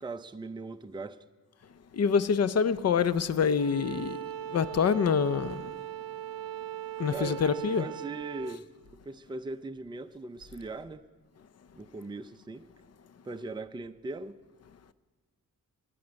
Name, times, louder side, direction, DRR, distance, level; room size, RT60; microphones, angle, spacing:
voice 1, 0.0-1.2 7.1-8.7 9.1-11.0 11.7-12.7 13.2-14.4, right 3 dB, 15° right, 0.5 m, -39 dB
voice 2, 2.0-4.2 4.5-5.6 7.0-7.9, left 6 dB, 50° left, 0.6 m, -26 dB
Bowed string instrument, 3.6-8.6, right 12 dB, 75° right, 0.7 m, -39 dB
14.0 x 10.0 x 9.4 m
wide cardioid pair, 105°, 34 cm